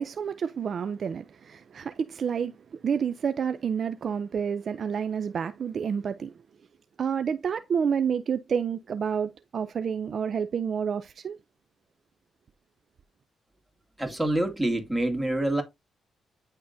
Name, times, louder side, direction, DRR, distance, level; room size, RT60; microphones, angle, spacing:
voice 1, 0.0-6.4 7.0-11.4, right 7 dB, 60° right, 0.4 m, -29 dB
voice 2, 14.0-15.6, right 1 dB, 10° right, 2.5 m, -26 dB
10.0 x 3.6 x 2.6 m
supercardioid pair, 65°, 0 cm